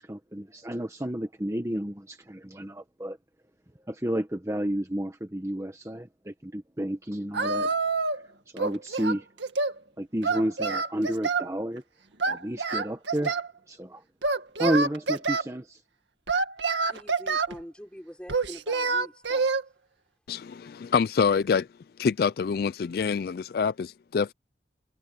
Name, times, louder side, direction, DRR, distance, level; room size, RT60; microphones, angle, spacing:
voice 1, 0.0-3.2 3.9-7.7 8.1-9.3 10.0-11.8 12.3-14.0 14.6-15.8, equal, 15° right, 1.2 m, -31 dB
Singing, 7.3-8.3 8.6-9.8 10.2-11.5 12.2-13.5 14.2-15.4 16.3-17.6 18.3-19.6, right 4 dB, 80° right, 2.1 m, -27 dB
voice 2, 16.9-19.5, equal, 5° left, 4.3 m, -44 dB
voice 3, 20.3-21.7 22.0-24.3, left 6 dB, 55° left, 0.3 m, -26 dB
head